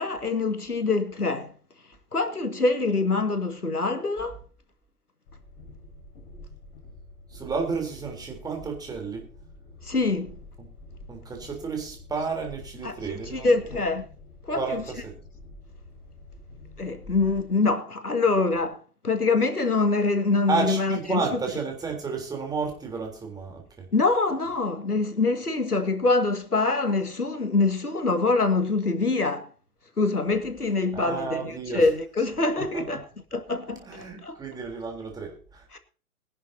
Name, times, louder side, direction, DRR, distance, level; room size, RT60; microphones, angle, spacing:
voice 1, 0.0-1.5 2.1-4.4 9.8-10.4 12.8-14.0 14.4-14.8 16.8-18.8 19.0-21.2 23.9-29.5 30.0-33.0 33.3-34.4 35.7-35.8, left 3 dB, 85° left, 2.1 m, -25 dB
Train, 5.3-17.5, left 2 dB, 35° left, 5.6 m, -47 dB
voice 2, 7.3-9.2 11.1-13.9 14.5-15.1 20.5-23.9 30.9-31.8 32.7-32.8 33.9-35.6, right 4 dB, 10° right, 3.6 m, -32 dB
21.0 x 11.0 x 2.8 m
figure-of-eight pair, 125°, 44 cm